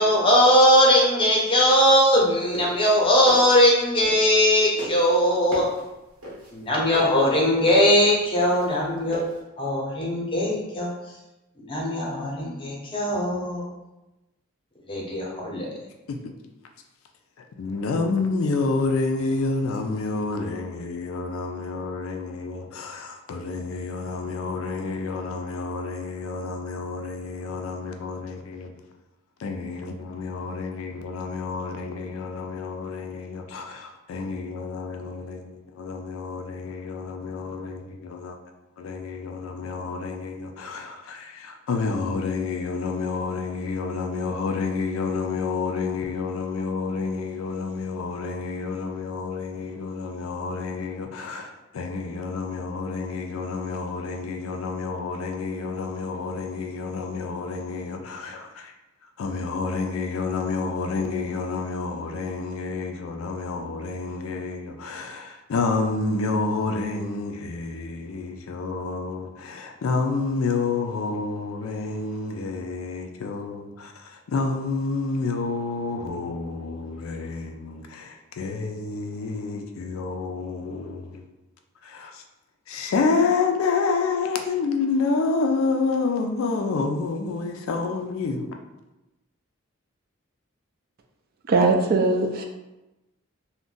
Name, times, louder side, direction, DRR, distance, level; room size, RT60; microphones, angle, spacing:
voice 1, 0.0-5.6 6.5-9.2 9.6-10.9 11.6-13.6 14.9-15.7, equal, 25° left, 0.6 m, -20 dB
sound 1, 2.4-4.5 4.8-9.4, equal, 90° right, 0.9 m, -36 dB
voice 2, 17.6-28.7 29.4-38.4 38.8-58.7 59.2-81.2 81.8-82.2 82.7-88.5, left 4 dB, 80° left, 0.4 m, -29 dB
voice 3, 91.5-92.4, right 3 dB, 45° right, 0.3 m, -20 dB
2.5 x 2.1 x 3.7 m
head